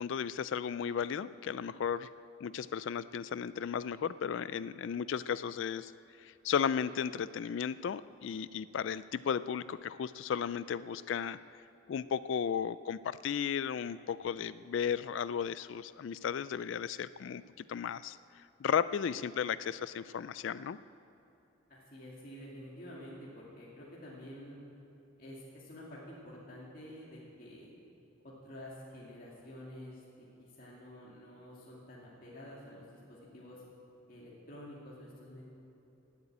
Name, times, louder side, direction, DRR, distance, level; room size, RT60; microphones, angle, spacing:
voice 1, 0.0-2.1 2.4-5.9 6.2-11.4 11.9-20.8, left 7 dB, 65° left, 16 dB, 0.3 m, -35 dB
voice 2, 21.7-24.6 25.2-27.7 28.2-33.6 34.1-35.4, left 1 dB, 45° left, -6 dB, 2.4 m, -49 dB
18.5 x 8.2 x 8.7 m, 2.8 s
head